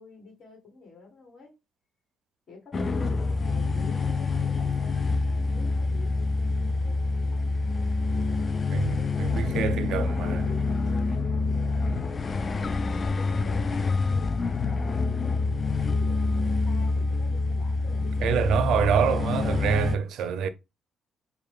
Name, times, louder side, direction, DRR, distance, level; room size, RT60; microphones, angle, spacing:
voice 1, 0.0-1.5 2.5-7.0 7.3-7.6 8.7-11.2 13.1-18.3 18.5-18.9 20.2-20.5, left 4 dB, 60° left, 1.7 m, -49 dB
sound 1, 2.7-20.0, left 3 dB, 35° left, 0.3 m, -26 dB
voice 2, 8.7-10.5 11.9-12.2 18.2-20.5, right 7 dB, 80° right, 0.4 m, -26 dB
sound 2, 13.3-19.9, left 6 dB, 10° left, 1.3 m, -40 dB
4.7 x 2.2 x 3.5 m
cardioid pair, 90°, 0 cm